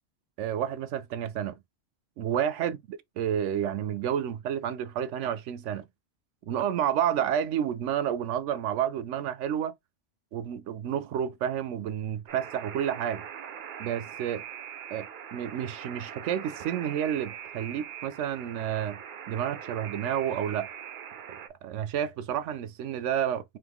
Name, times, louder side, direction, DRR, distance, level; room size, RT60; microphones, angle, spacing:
voice 1, 0.4-1.6 2.2-5.9 6.5-9.7 10.3-13.2 13.8-14.4 14.9-19.0 19.3-20.7 21.6-23.6, right 9 dB, 90° right, 0.9 m, -30 dB
Alarm, 12.3-21.5, right 8 dB, 55° right, 0.7 m, -42 dB
3.8 x 2.8 x 3.4 m
omnidirectional pair, 1.2 m